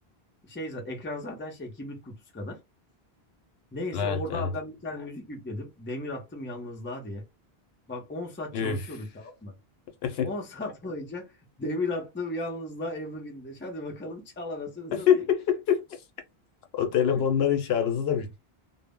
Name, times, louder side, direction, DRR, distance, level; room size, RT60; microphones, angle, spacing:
voice 1, 0.4-2.6 3.7-7.3 7.9-9.5 10.2-11.3 11.6-15.2, left 2 dB, 15° left, 0.5 m, -36 dB
voice 2, 3.9-4.5 8.5-8.9 10.0-10.3 14.9-15.8 16.7-18.4, left 8 dB, 75° left, 0.8 m, -25 dB
2.0 x 2.0 x 3.5 m
omnidirectional pair, 1.1 m